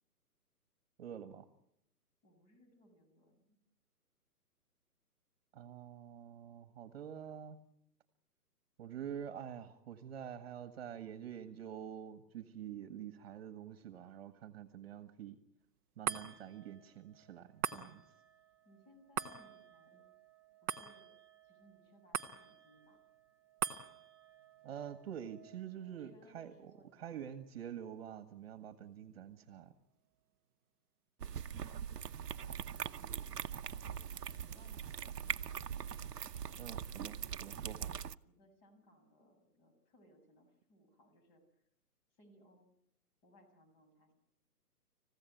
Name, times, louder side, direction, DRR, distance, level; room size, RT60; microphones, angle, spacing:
voice 1, 1.0-1.5 5.5-7.6 8.8-15.4 16.0-18.0 24.6-26.5 27.0-29.7 36.6-37.9, right 9 dB, 40° right, 9 dB, 1.8 m, -47 dB
voice 2, 2.2-3.6 18.7-20.0 20.6-21.1 21.4-23.0 25.9-27.3 33.2-34.0 34.3-35.6 36.4-37.7 38.2-41.6 42.1-42.7 43.2-44.1, equal, 30° left, 7 dB, 7.2 m, -66 dB
sound 1, 16.0-28.6 29.1-29.2, right 9 dB, 15° right, 0.9 m, -45 dB
sound 2, 31.2-38.1, right 8 dB, 80° right, 1.0 m, -42 dB
29.5 x 16.0 x 9.3 m, 0.80 s
hypercardioid pair, 150°, 47 cm